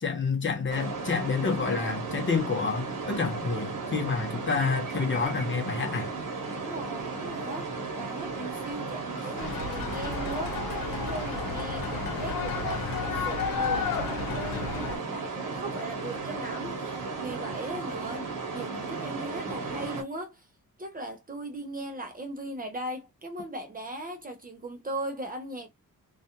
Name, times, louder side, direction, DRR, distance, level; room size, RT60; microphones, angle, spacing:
voice 1, 0.0-6.1, left 4 dB, 35° left, 0.7 m, -28 dB
sound 1, 0.7-20.0, right 4 dB, 70° right, 1.0 m, -35 dB
voice 2, 6.5-12.9 13.2-18.3 18.5-20.5 20.8-25.7, right 1 dB, 25° right, 0.5 m, -38 dB
sound 2, 9.4-15.0, left 6 dB, 80° left, 0.7 m, -32 dB
2.4 x 2.2 x 2.7 m
wide cardioid pair, 125°, 34 cm